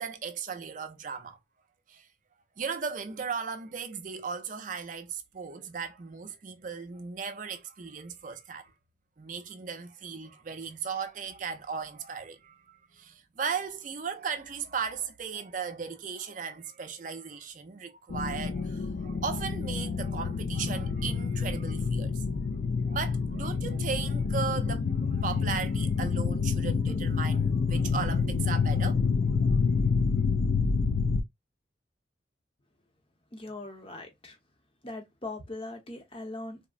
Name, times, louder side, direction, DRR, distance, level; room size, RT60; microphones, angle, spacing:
voice 1, 0.0-1.4 1.9-2.1 2.6-8.7 9.2-22.2 22.9-29.6, right 6 dB, 45° right, 0.5 m, -37 dB
sound 1, 18.1-31.2, left 5 dB, 60° left, 0.4 m, -28 dB
voice 2, 33.3-34.4 34.8-36.6, left 2 dB, 30° left, 0.7 m, -40 dB
3.5 x 2.0 x 2.4 m
head